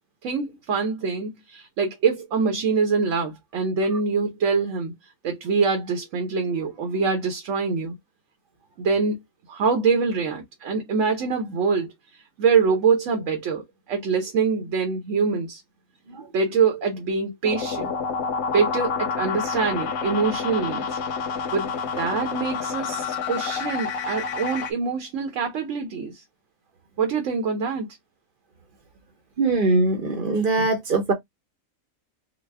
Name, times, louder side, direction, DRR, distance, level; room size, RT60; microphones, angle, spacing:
voice 1, 0.2-4.9 5.2-7.9 8.8-9.2 9.5-15.6 16.3-17.9 18.5-21.0 21.5-21.7 22.0-26.2 27.0-27.9, right 5 dB, 70° right, 1.1 m, -24 dB
sound 1, 17.4-24.7, left 5 dB, 90° left, 1.2 m, -28 dB
voice 2, 29.4-31.1, right 3 dB, 45° right, 0.8 m, -22 dB
4.0 x 2.0 x 3.3 m
omnidirectional pair, 1.4 m